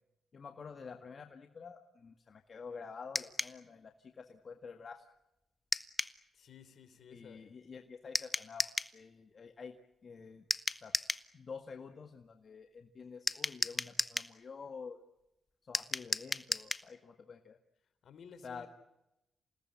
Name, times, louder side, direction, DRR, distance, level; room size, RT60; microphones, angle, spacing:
voice 1, 0.3-5.0 7.1-9.8 10.0-10.5 10.7-10.9 11.3-15.0 15.6-17.6 18.4-18.7, left 5 dB, 55° left, 6 dB, 1.8 m, -49 dB
sound 1, 3.1-3.6 5.7-6.2 8.1-8.9 10.5-11.3 13.3-14.3 15.7-16.9, left 2 dB, 25° left, 1.2 m, -34 dB
voice 2, 6.3-7.5 18.0-18.7, left 6 dB, 70° left, 12 dB, 3.3 m, -55 dB
28.5 x 18.5 x 8.8 m, 0.90 s
supercardioid pair, 50°, 0 cm